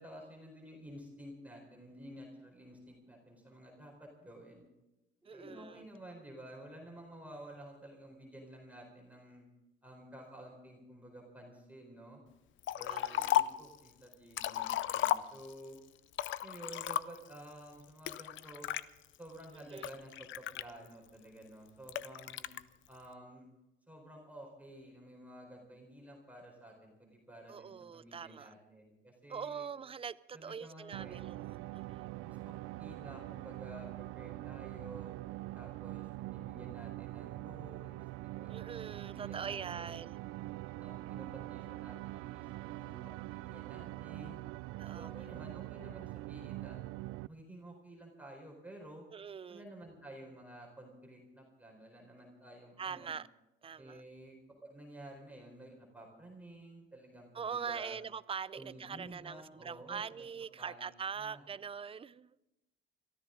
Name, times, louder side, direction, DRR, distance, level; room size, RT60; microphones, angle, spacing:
voice 1, 0.0-4.7 5.2-9.4 9.8-12.2 12.7-15.8 16.4-18.7 19.2-22.5 22.9-23.5 23.9-29.7 30.3-31.2 32.2-35.2 35.5-38.6 38.9-40.0 40.8-44.4 44.8-46.8 47.3-49.1 49.5-53.1 53.8-58.0 58.5-60.3 60.6-61.5, right 1 dB, 5° right, 4.1 m, -52 dB
voice 2, 5.2-5.9 12.9-13.4 19.5-19.9 27.5-28.5 29.3-32.1 38.5-40.2 44.8-45.1 49.1-49.7 52.8-53.3 53.6-54.0 57.3-62.4, right 6 dB, 25° right, 0.5 m, -43 dB
Liquid, 12.6-13.7 14.1-15.7 16.1-17.4 18.1-18.8 19.4-21.1 21.9-22.6, left 13 dB, 65° left, 0.6 m, -34 dB
sound 1, 30.9-47.3, right 19 dB, 90° right, 0.4 m, -44 dB
22.5 x 14.0 x 3.8 m
cardioid pair, 105°, 21 cm